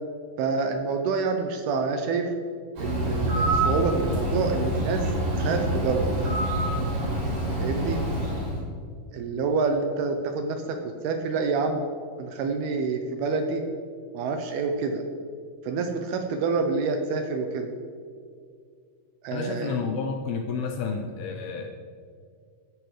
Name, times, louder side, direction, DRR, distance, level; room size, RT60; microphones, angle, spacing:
voice 1, 0.4-2.3 2.8-5.0 5.3-6.1 7.6-8.0 9.1-10.8 11.0-11.8 12.2-13.6 14.1-15.0 15.7-17.7 19.2-19.8, right 4 dB, 80° right, 5 dB, 2.5 m, -27 dB
Bird, 2.8-8.6, right 1 dB, 45° right, 4.1 m, -26 dB
voice 2, 19.3-21.7, left 5 dB, 80° left, 4 dB, 2.4 m, -30 dB
15.0 x 9.6 x 3.3 m, 2.2 s
omnidirectional pair, 5.0 m